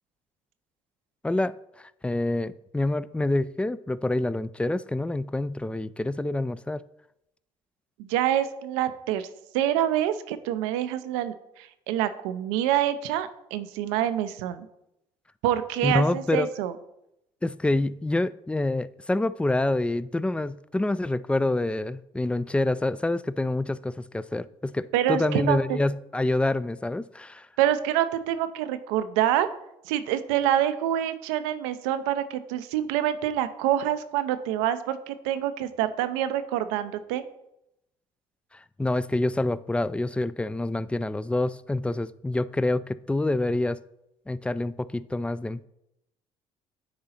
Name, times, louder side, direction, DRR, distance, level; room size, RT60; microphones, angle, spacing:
voice 1, 1.2-6.8 15.8-16.5 17.4-27.5 38.8-43.8 44.3-45.7, left 2 dB, 10° left, 17 dB, 0.3 m, -27 dB
voice 2, 8.0-9.3 9.5-14.7 15.4-16.7 24.9-25.8 27.6-29.5 29.9-37.2, right 11 dB, 85° right, 11 dB, 0.5 m, -26 dB
9.6 x 3.9 x 4.2 m, 0.83 s
supercardioid pair, 65°, 15 cm